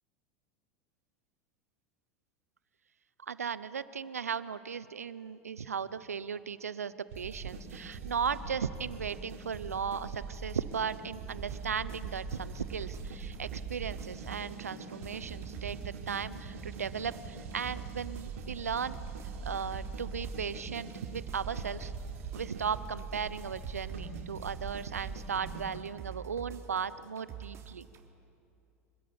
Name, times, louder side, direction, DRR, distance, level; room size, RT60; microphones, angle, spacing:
voice 1, 3.2-19.0 19.4-21.9 22.3-27.9, right 6 dB, 85° right, 16 dB, 0.8 m, -36 dB
sound 1, 7.1-25.8, right 4 dB, 70° right, 3.6 m, -43 dB
sound 2, 11.4-28.0, right 9 dB, 35° right, 3.3 m, -46 dB
25.0 x 21.5 x 8.8 m, 2.6 s
hypercardioid pair, 85°, 8 cm